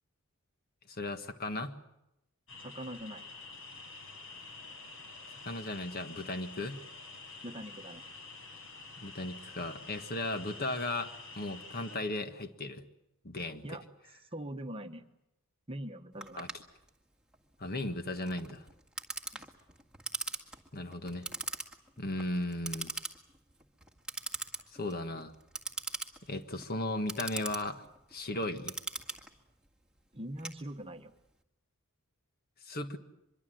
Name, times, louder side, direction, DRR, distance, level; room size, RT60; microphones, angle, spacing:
voice 1, 0.9-1.8 5.4-6.8 9.0-12.8 13.2-13.8 16.4-16.5 17.6-18.6 20.7-21.3 22.0-22.9 24.7-25.3 26.3-28.8 32.6-33.0, left 2 dB, 45° left, 8 dB, 1.6 m, -36 dB
sound 1, 2.5-12.0, left 3 dB, 65° left, 6.1 m, -48 dB
voice 2, 2.6-3.3 7.4-8.0 13.6-13.8 14.3-15.0 15.7-16.5 19.3-19.5 30.1-31.1, right 1 dB, 25° right, 7 dB, 1.2 m, -42 dB
Clock, 16.2-31.1, right 3 dB, 5° right, 2.0 m, -42 dB
24.5 x 23.0 x 7.8 m, 0.87 s
head